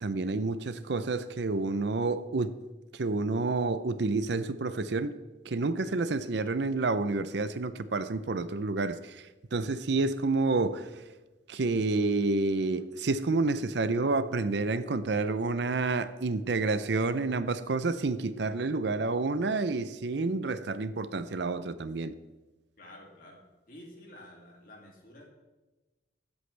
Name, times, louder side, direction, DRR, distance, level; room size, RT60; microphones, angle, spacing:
voice 1, 0.0-2.5 2.9-5.2 5.5-11.0 11.5-22.1, right 3 dB, 65° right, 0.6 m, -29 dB
voice 2, 22.8-25.3, left 1 dB, 45° left, 2.6 m, -51 dB
22.0 x 8.1 x 3.4 m
head